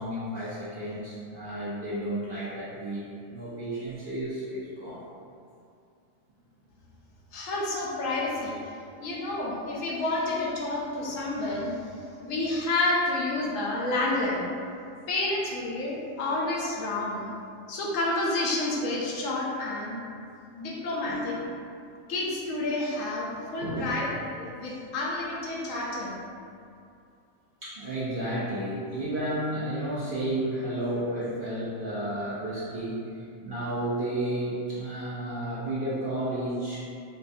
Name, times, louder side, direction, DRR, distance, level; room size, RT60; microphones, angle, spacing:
voice 1, 0.0-5.1 21.0-21.5 23.6-23.9 27.6-36.8, right 1 dB, 60° right, -9 dB, 0.6 m, -32 dB
voice 2, 7.3-8.6 9.0-14.4 15.1-17.3 17.7-20.0 20.5-21.4 22.1-26.2, left 2 dB, 75° left, -4 dB, 1.0 m, -29 dB
4.0 x 2.2 x 2.6 m, 2.4 s
omnidirectional pair, 1.4 m